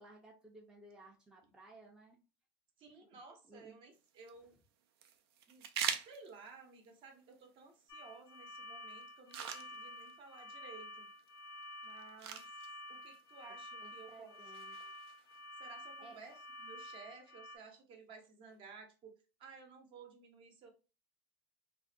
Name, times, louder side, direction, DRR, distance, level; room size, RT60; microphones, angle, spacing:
voice 1, 0.0-2.2 3.5-3.8 13.5-14.9 16.0-16.2, right 2 dB, 5° right, 0 dB, 0.4 m, -58 dB
voice 2, 2.8-4.6 5.5-11.1 11.8-12.6 12.9-14.3 15.6-19.1 19.4-20.7, right 4 dB, 40° right, 5 dB, 0.7 m, -56 dB
sound 1, 3.9-16.9, right 8 dB, 80° right, 0.4 m, -47 dB
sound 2, 7.9-17.6, equal, 70° left, 0.5 m, -50 dB
2.4 x 2.1 x 2.4 m, 0.32 s
supercardioid pair, 120°, 13 cm